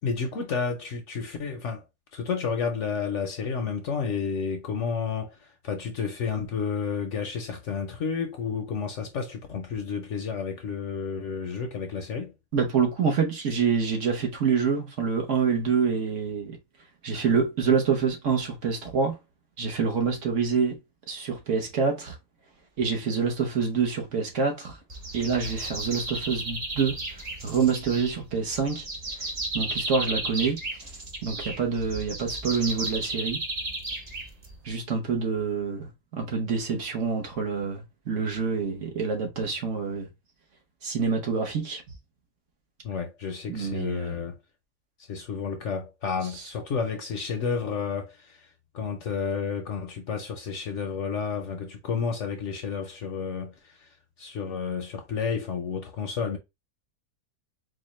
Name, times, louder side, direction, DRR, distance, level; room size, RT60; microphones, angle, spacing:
voice 1, 0.0-1.8 2.1-12.3 42.8-44.4 45.0-56.4, left 5 dB, 65° left, 0.8 m, -31 dB
voice 2, 12.5-16.6 17.0-19.2 19.6-20.8 21.1-22.2 22.8-24.8 25.1-27.0 27.4-28.9 29.2-29.3 29.5-30.9 31.2-33.4 34.6-40.1 40.8-41.8 43.5-44.2 46.3-46.4, right 5 dB, 55° right, 1.1 m, -26 dB
sound 1, 24.9-34.7, right 2 dB, 35° right, 0.6 m, -34 dB
4.2 x 2.3 x 3.0 m
omnidirectional pair, 1.6 m